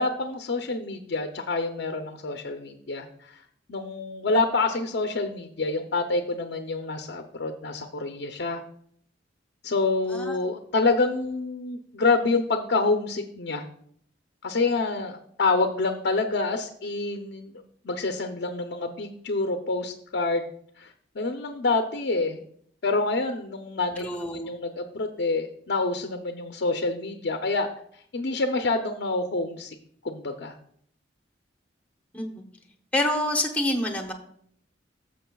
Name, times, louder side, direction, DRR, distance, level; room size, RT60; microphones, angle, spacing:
voice 1, 0.0-3.4 3.7-8.6 9.6-13.6 14.4-17.5 17.8-20.5 20.8-22.4 22.8-24.1 24.3-27.7 28.1-29.8 30.0-30.6, left 3 dB, 60° left, 6 dB, 0.6 m, -27 dB
voice 2, 10.1-10.4 24.0-24.5 32.1-32.4 32.9-34.1, left 1 dB, 10° left, 4 dB, 0.8 m, -27 dB
13.5 x 6.5 x 2.3 m, 0.65 s
head